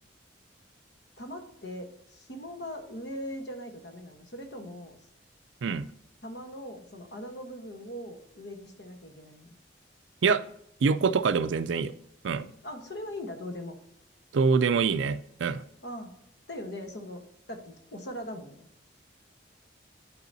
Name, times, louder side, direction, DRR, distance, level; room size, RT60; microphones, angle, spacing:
voice 1, 1.2-5.0 6.2-9.5 12.6-13.7 15.8-16.1 16.5-17.2 17.5-18.7, equal, 65° left, 5 dB, 1.2 m, -40 dB
voice 2, 10.8-11.9 12.2-12.5 14.3-15.6, right 5 dB, 80° right, 13 dB, 0.4 m, -25 dB
11.0 x 4.8 x 2.7 m, 0.75 s
head